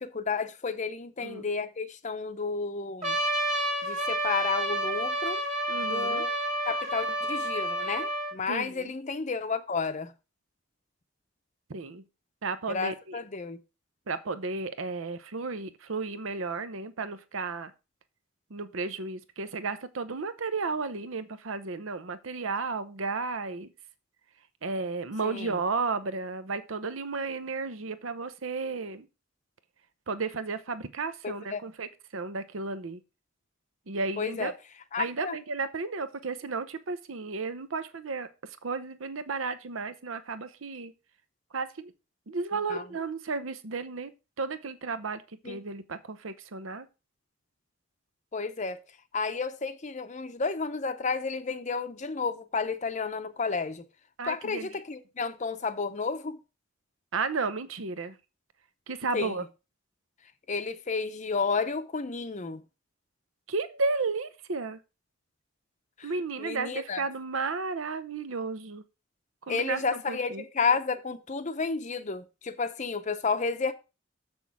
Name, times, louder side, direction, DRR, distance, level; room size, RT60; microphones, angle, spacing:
voice 1, 0.0-3.2 3.8-5.4 5.9-6.3 6.7-10.1 12.7-13.6 25.2-25.6 31.2-31.6 34.2-34.5 34.9-35.3 42.7-42.8 45.4-45.6 48.3-48.8 49.1-53.8 54.2-56.4 59.1-59.4 60.5-62.6 66.0-66.1 66.4-67.0 69.5-73.7, left 4 dB, 35° left, 0.7 m, -31 dB
Trumpet, 3.0-8.3, right 1 dB, 35° right, 1.9 m, -29 dB
voice 2, 5.7-6.2 8.5-8.9 11.7-12.0 12.4-13.2 14.1-17.7 18.5-23.7 24.6-29.1 30.1-33.0 33.9-34.5 35.0-38.3 38.6-40.9 41.5-41.9 42.3-44.1 44.4-46.9 54.2-54.7 57.1-58.2 58.9-59.4 63.5-64.8 66.0-68.8 69.5-70.4, right 4 dB, 80° right, 0.8 m, -33 dB
7.2 x 6.1 x 4.7 m
head